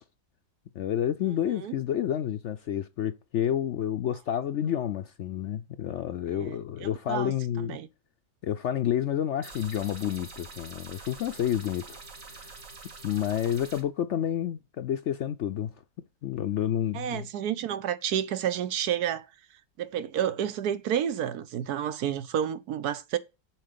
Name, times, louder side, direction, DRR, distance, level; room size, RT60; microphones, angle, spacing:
voice 1, 0.8-7.8 8.4-12.0 12.3-12.6 13.0-15.7 16.2-17.2, left 10 dB, 65° left, 0.7 m, -29 dB
voice 2, 6.3-7.9 16.9-19.3 19.8-23.2, right 9 dB, 75° right, 1.3 m, -30 dB
sound 1, 9.4-13.8, right 3 dB, 55° right, 2.2 m, -45 dB
7.6 x 4.7 x 6.7 m
omnidirectional pair, 1.7 m